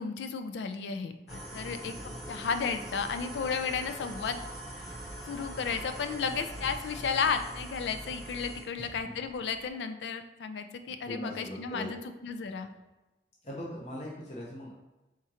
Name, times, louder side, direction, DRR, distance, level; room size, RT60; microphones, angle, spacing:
voice 1, 0.0-4.4 4.8-5.0 5.3-12.7, left 5 dB, 80° left, 8 dB, 0.4 m, -33 dB
sound 1, 1.3-8.6, right 1 dB, ahead, 0.9 m, -42 dB
sound 2, 3.2-9.7, right 1 dB, 80° right, 0.6 m, -54 dB
voice 2, 8.8-9.1 11.0-11.9 13.4-14.7, equal, 40° left, -4 dB, 0.8 m, -40 dB
4.3 x 3.6 x 2.8 m, 1.0 s
head